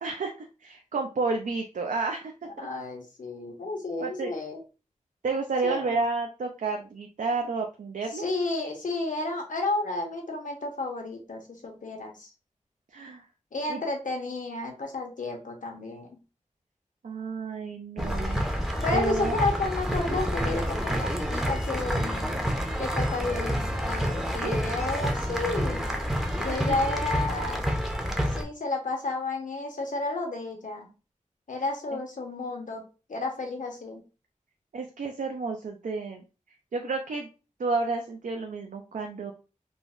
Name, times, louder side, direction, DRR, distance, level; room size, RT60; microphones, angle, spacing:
voice 1, 0.0-2.3 2.6-2.7 4.0-4.3 5.2-8.2 12.9-13.2 13.7-13.8 17.0-18.5 18.9-19.4 24.3-24.6 26.5-26.8 31.9-32.0 34.7-36.2 36.7-37.3 37.6-39.3, right 3 dB, 80° right, 2 dB, 0.4 m, -31 dB
voice 2, 2.6-4.6 5.6-6.0 8.1-12.3 13.5-16.1 18.8-22.4 22.8-26.0 26.4-27.7 28.3-30.9 31.5-32.8 33.1-34.0, left 3 dB, 80° left, 3 dB, 0.8 m, -32 dB
sound 1, 18.0-28.4, equal, 5° right, 0.5 m, -28 dB
3.8 x 2.1 x 2.4 m, 0.32 s
wide cardioid pair, 75°, 13 cm